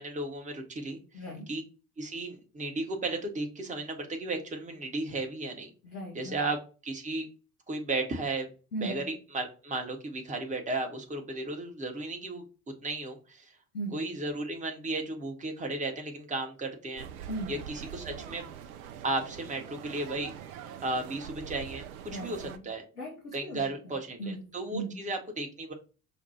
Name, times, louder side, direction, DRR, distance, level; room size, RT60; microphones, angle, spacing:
voice 1, 0.0-1.0 1.5-1.6 2.0-5.7 6.1-7.3 7.7-8.5 8.8-12.5 12.8-13.5 13.9-17.1 17.5-18.4 19.0-20.3 20.6-22.9 23.3-25.7, right 2 dB, 15° right, 3 dB, 1.0 m, -34 dB
voice 2, 1.1-1.5 5.8-6.4 8.7-9.1 13.7-14.0 17.3-17.5 22.1-22.6 23.0-25.1, right 1 dB, 85° left, -3 dB, 0.8 m, -38 dB
sound 1, 17.0-22.6, right 9 dB, 70° right, 0.6 m, -44 dB
5.9 x 2.3 x 2.7 m, 0.36 s
figure-of-eight pair, 55°, 44 cm